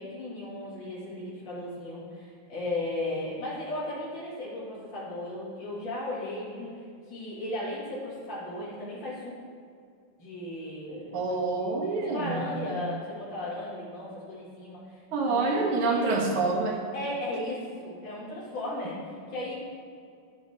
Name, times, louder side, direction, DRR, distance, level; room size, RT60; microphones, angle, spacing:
voice 1, 0.0-6.7 7.1-9.3 10.2-11.2 11.6-16.1 16.9-19.5, left 1 dB, 60° left, -8 dB, 2.9 m, -36 dB
voice 2, 11.1-12.4 15.1-16.8, right 3 dB, 90° right, -2 dB, 2.0 m, -27 dB
10.0 x 6.1 x 3.6 m, 2.3 s
omnidirectional pair, 2.3 m